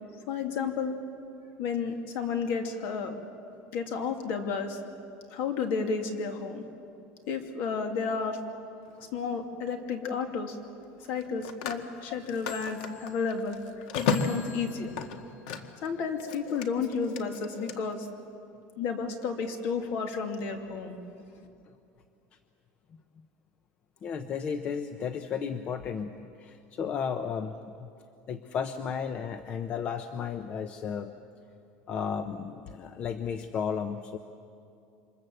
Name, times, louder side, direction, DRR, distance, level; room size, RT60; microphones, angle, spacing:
voice 1, 0.3-1.0 1.6-3.2 3.7-4.8 5.3-6.6 7.3-8.4 9.1-10.5 11.1-13.6 13.9-14.9 15.8-18.1 18.8-21.0, left 5 dB, 50° left, 5 dB, 2.7 m, -32 dB
Telephone, 8.8-9.1 11.0-15.9 16.2-17.7, left 5 dB, 80° left, 1.8 m, -34 dB
voice 2, 24.0-27.9 28.3-31.1 31.9-34.2, left 7 dB, 30° left, 9 dB, 0.7 m, -34 dB
28.0 x 25.5 x 7.8 m, 2.6 s
cardioid pair, 175°, 4 cm